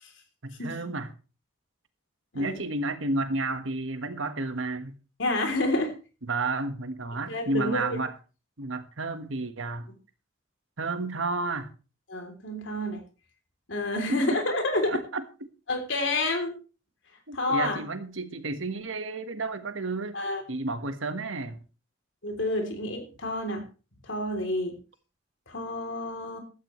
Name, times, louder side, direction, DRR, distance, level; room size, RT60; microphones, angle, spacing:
voice 1, 0.4-1.1 2.3-5.0 6.2-8.1 8.6-9.9 10.8-11.7 14.1-14.4 14.9-15.5 17.3-20.2 20.5-21.6, right 2 dB, 75° right, 9 dB, 1.5 m, -31 dB
voice 2, 5.2-5.9 7.3-8.0 12.1-13.0 13.7-15.0 15.7-16.6 17.3-17.8 20.1-20.4 22.2-23.6 24.0-24.8 25.5-26.4, left 2 dB, 70° left, 5 dB, 3.4 m, -29 dB
15.5 x 13.0 x 3.2 m, 0.34 s
head